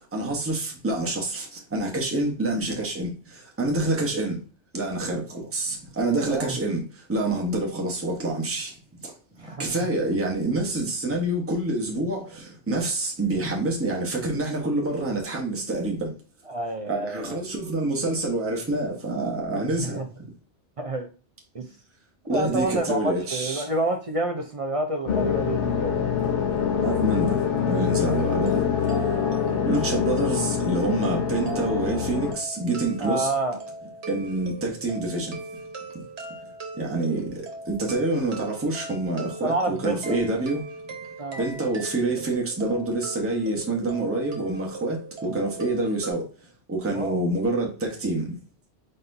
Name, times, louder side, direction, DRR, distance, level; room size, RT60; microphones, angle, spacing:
voice 1, 0.1-4.4 4.7-9.1 9.4-16.1 16.9-20.0 22.3-23.7 26.8-29.2 29.7-33.3 34.0-35.4 36.7-40.6 41.4-46.3 46.7-48.4, right 2 dB, 15° right, 0.9 m, -27 dB
voice 2, 9.4-9.9 16.5-17.4 19.8-20.1 20.8-21.1 21.5-21.7 22.3-26.2 33.0-33.6 39.4-40.2 41.2-41.4 46.9-47.2, right 2 dB, 45° right, 0.5 m, -29 dB
sound 1, 25.1-32.3, left 7 dB, 55° left, 0.9 m, -25 dB
sound 2, 28.0-46.1, right 3 dB, 65° right, 1.2 m, -39 dB
4.3 x 4.1 x 2.6 m
omnidirectional pair, 1.2 m